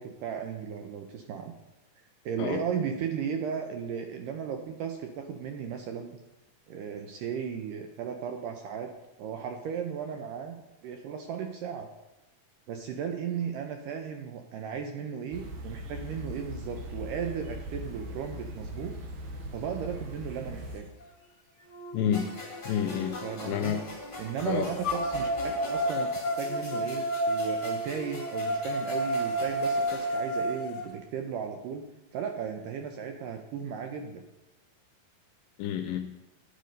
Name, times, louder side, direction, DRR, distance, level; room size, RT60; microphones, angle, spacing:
voice 1, 0.0-1.5 2.3-6.2 6.7-8.9 9.2-10.6 10.8-11.9 12.7-18.9 19.5-20.9 23.2-23.8 24.2-25.3 25.6-26.1 26.4-31.8 32.1-34.2, right 7 dB, 80° right, 5 dB, 2.0 m, -35 dB
sound 1, 15.3-20.8, equal, 65° right, 2.4 m, -40 dB
sound 2, 21.0-21.1 21.7-23.6 24.8-30.8, right 1 dB, 50° left, 1.7 m, -31 dB
voice 2, 21.9-22.3 22.7-23.2 23.4-23.8 24.5-24.7 35.6-36.1, left 9 dB, 80° left, 7 dB, 2.0 m, -29 dB
sound 3, 22.1-30.1, left 2 dB, 20° left, 1.7 m, -43 dB
9.4 x 8.2 x 5.2 m, 1.0 s
omnidirectional pair, 4.4 m